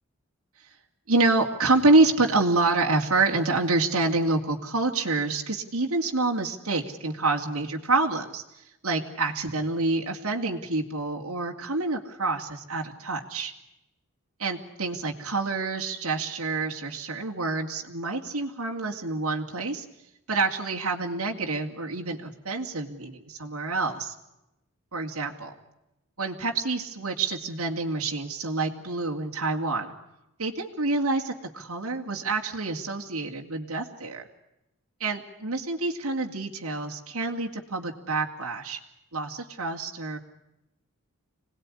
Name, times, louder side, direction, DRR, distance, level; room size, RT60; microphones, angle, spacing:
voice 1, 1.1-13.5 14.4-19.8 20.3-24.1 24.9-25.5 26.2-29.9 30.4-34.2 35.0-38.8 39.1-40.2, right 3 dB, 80° right, 1 dB, 2.5 m, -27 dB
26.5 x 19.5 x 9.9 m, 0.91 s
head